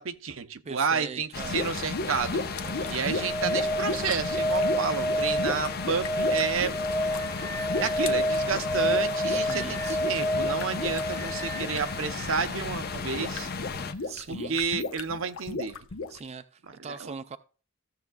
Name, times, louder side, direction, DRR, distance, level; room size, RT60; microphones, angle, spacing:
voice 1, 0.0-2.4 2.9-6.8 7.8-13.5 14.3-15.8 17.0-17.1, right 5 dB, 75° right, 0.8 m, -30 dB
voice 2, 0.6-1.6 2.6-3.0 9.3-10.1 14.0-14.6 16.1-17.4, right 5 dB, 30° right, 0.4 m, -41 dB
sound 1, 1.3-13.9, left 4 dB, 50° left, 0.8 m, -35 dB
sound 2, 1.4-16.2, left 3 dB, 85° left, 0.8 m, -36 dB
sound 3, 2.7-12.5 14.8-14.9, equal, 10° left, 0.7 m, -30 dB
15.5 x 7.1 x 2.3 m
head